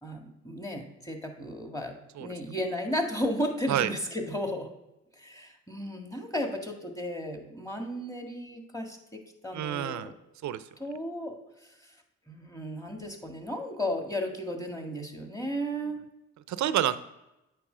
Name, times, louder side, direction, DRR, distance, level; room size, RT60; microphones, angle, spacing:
voice 1, 0.0-1.9 2.2-4.7 5.1-10.1 10.8-11.4 11.8-11.9 12.3-16.0, equal, 10° left, 3 dB, 1.8 m, -34 dB
voice 2, 9.5-10.1 10.4-10.6 16.5-17.0, right 11 dB, 70° right, 14 dB, 0.6 m, -28 dB
8.4 x 3.0 x 5.6 m, 0.93 s
supercardioid pair, 55°, 30 cm